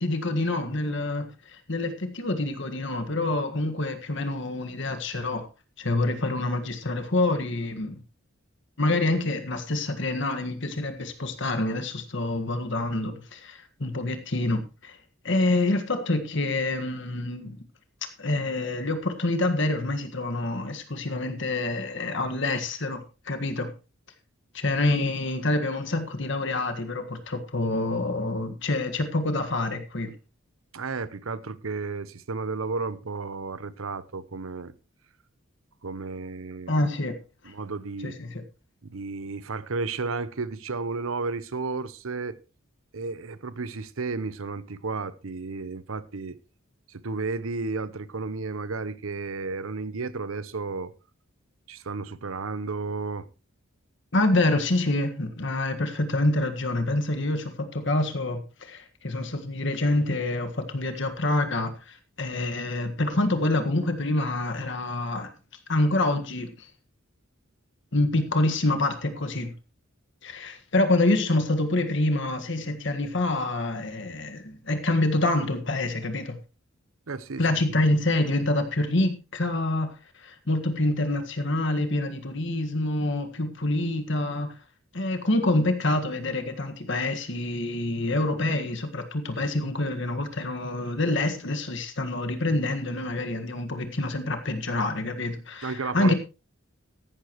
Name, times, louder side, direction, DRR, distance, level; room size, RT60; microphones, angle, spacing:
voice 1, 0.0-5.5 5.8-8.0 8.8-15.0 15.2-17.6 18.2-23.7 24.5-30.1 36.7-37.2 38.0-38.4 54.1-65.3 65.7-66.7 67.9-69.5 70.2-76.4 77.4-79.9 80.2-84.5 84.9-96.1, left 2 dB, 60° left, 1.7 m, -27 dB
voice 2, 30.7-34.7 35.8-36.8 37.4-38.2 38.8-42.4 42.9-46.4 46.9-50.9 51.7-53.3 77.1-77.6 95.6-96.1, right 4 dB, 80° right, 0.8 m, -33 dB
14.5 x 11.5 x 3.1 m
head